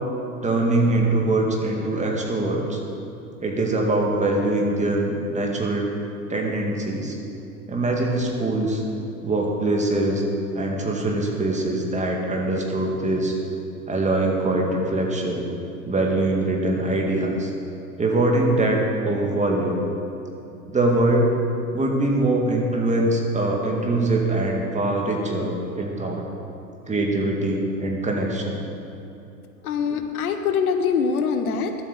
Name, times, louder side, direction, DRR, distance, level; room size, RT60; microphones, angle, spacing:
voice 1, 0.4-2.8 3.4-5.9 6.3-7.2 7.7-8.8 9.2-10.2 10.5-13.3 13.9-15.5 15.8-17.5 18.0-19.8 20.7-21.3 21.7-26.2 26.9-28.6, right 2 dB, 15° right, 0 dB, 2.1 m, -23 dB
voice 2, 29.6-31.9, left 6 dB, 75° left, 7 dB, 1.1 m, -23 dB
12.0 x 8.2 x 6.8 m, 2.7 s
hypercardioid pair, 95°, 44 cm